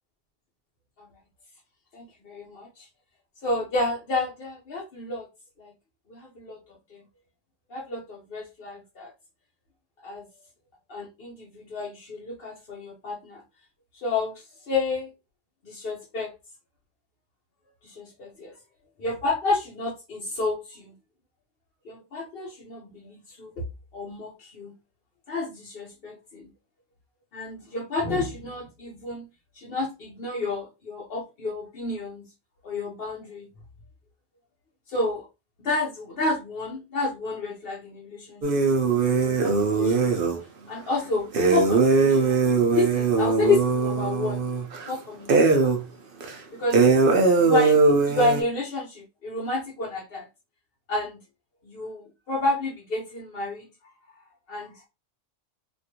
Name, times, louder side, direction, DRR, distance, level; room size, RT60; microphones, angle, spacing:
voice 1, 1.9-2.9 3.4-5.2 5.6-5.7 6.1-6.6 6.9-7.0 7.7-9.1 10.0-10.2 10.9-13.4 14.0-14.3 14.7-15.1 15.6-16.3 17.8-18.5 19.0-20.9 21.9-23.5 23.9-24.7 25.3-26.5 27.3-29.3 29.6-32.3 32.6-33.5 34.9-35.3 35.6-38.4 39.1-40.3 40.7-42.4 42.7-44.4 44.9-45.7 46.5-46.8 47.3-47.8 48.1-50.3 50.9-51.2 51.6-53.6 54.5-54.9, left 3 dB, 55° left, -3 dB, 1.0 m, -30 dB
sound 1, 38.4-40.4 41.3-44.9 45.3-45.8 46.2-46.3 46.7-48.4, right 4 dB, 55° right, 0.8 m, -20 dB
3.0 x 2.6 x 2.8 m, 0.27 s
omnidirectional pair, 1.3 m